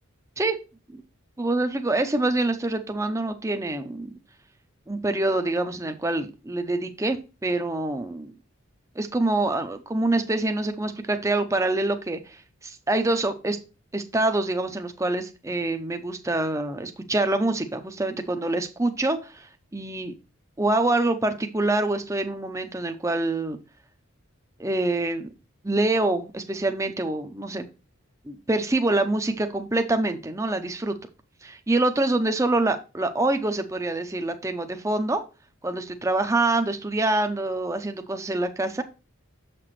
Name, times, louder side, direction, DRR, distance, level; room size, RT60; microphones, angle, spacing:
voice 1, 1.4-4.1 4.9-8.3 9.0-13.6 13.9-20.1 20.6-23.6 24.6-25.3 25.6-27.6 28.3-30.9 31.4-35.2 35.6-38.8, right 2 dB, 15° right, 7 dB, 0.6 m, -25 dB
7.2 x 5.9 x 3.1 m, 0.31 s
head